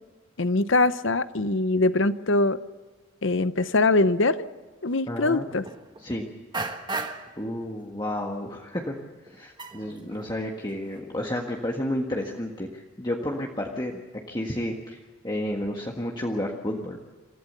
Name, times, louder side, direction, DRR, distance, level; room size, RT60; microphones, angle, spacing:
voice 1, 0.4-2.6 3.2-4.5 4.8-5.6, left 2 dB, 60° left, 13 dB, 0.8 m, -22 dB
sound 1, 4.9-5.0 5.5-6.1 6.5-7.4 7.8-8.2 8.5-8.6 9.0-10.4 10.7-11.0, right 3 dB, 20° right, 1.3 m, -36 dB
voice 2, 5.1-5.5 6.0-6.3 7.4-8.9 9.3-14.0 14.3-15.0 15.2-17.0, left 1 dB, 20° left, -1 dB, 1.6 m, -31 dB
27.0 x 15.5 x 6.9 m, 1.3 s
head